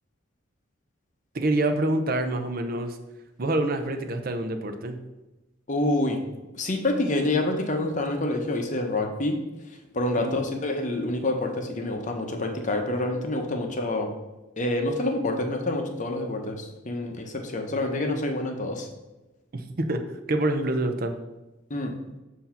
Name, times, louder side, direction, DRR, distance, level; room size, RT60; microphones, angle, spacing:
voice 1, 1.3-3.0 3.4-5.0 10.2-10.4 19.5-20.0 20.3-21.1, right 2 dB, 45° right, 7 dB, 0.6 m, -26 dB
voice 2, 5.7-6.2 6.5-9.4 9.7-14.1 14.6-18.9 21.7-21.9, left 2 dB, 35° left, 4 dB, 0.8 m, -27 dB
7.8 x 2.8 x 5.7 m, 1.1 s
head